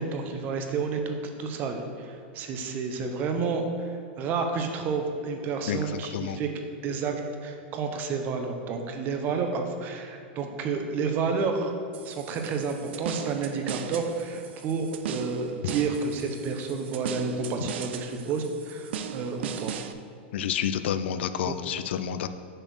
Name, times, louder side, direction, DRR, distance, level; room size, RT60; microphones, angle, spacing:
voice 1, 0.0-6.5 6.8-7.1 7.4-11.7 12.0-19.7 21.5-21.6, right 4 dB, 30° right, 4 dB, 0.7 m, -30 dB
voice 2, 5.7-6.4 20.3-22.3, left 9 dB, 75° left, 11 dB, 0.4 m, -29 dB
sound 1, 11.9-19.9, right 8 dB, 75° right, 0.4 m, -38 dB
6.6 x 4.1 x 6.2 m, 2.4 s
supercardioid pair, 155°, 6 cm